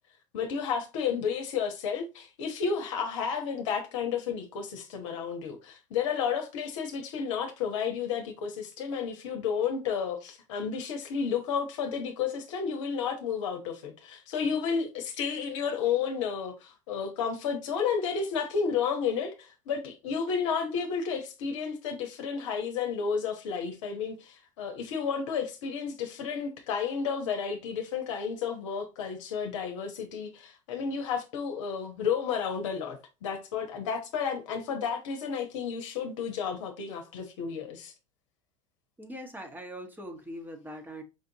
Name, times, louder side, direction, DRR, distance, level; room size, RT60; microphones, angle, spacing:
voice 1, 0.3-37.9, left 6 dB, 70° left, 0.8 m, -32 dB
voice 2, 39.0-41.0, equal, 10° right, 1.0 m, -41 dB
5.0 x 2.5 x 2.7 m
hypercardioid pair, 85°, 16 cm